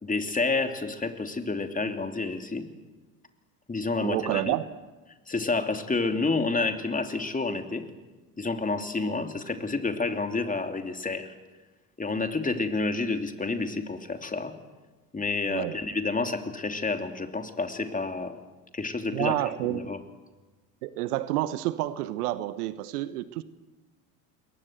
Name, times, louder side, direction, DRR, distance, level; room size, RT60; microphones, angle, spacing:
voice 1, 0.0-2.7 3.7-4.5 5.3-7.8 8.4-11.3 12.0-14.6 15.1-18.4 18.7-19.3 19.7-20.0, left 3 dB, 15° left, 6 dB, 3.0 m, -29 dB
voice 2, 4.0-4.7 15.5-15.8 19.1-19.8 20.8-23.4, right 15 dB, 65° right, 15 dB, 1.3 m, -29 dB
28.5 x 22.0 x 8.0 m, 1.2 s
figure-of-eight pair, 70°, 49 cm